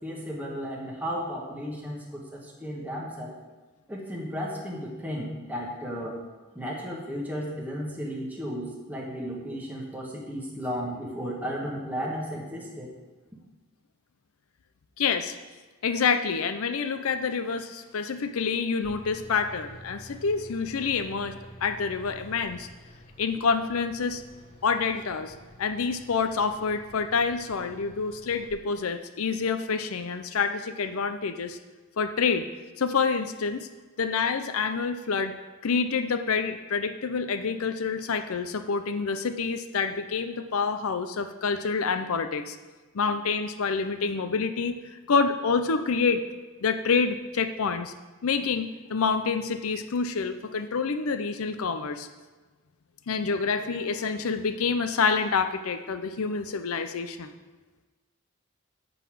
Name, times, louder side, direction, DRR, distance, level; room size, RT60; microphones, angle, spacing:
voice 1, 0.0-3.4 3.9-6.2 6.5-12.9, equal, 10° right, -3 dB, 1.4 m, -34 dB
voice 2, 15.0-15.3 15.8-21.4 21.6-22.7 23.2-24.2 24.6-31.6 32.0-32.5 32.8-33.7 34.0-35.3 35.6-42.6 42.9-46.2 46.6-47.9 48.2-52.1 53.1-57.3, left 5 dB, 85° left, 9 dB, 0.6 m, -27 dB
Bus, 18.8-28.5, equal, 25° left, 1.2 m, -49 dB
11.0 x 4.0 x 7.6 m, 1.3 s
head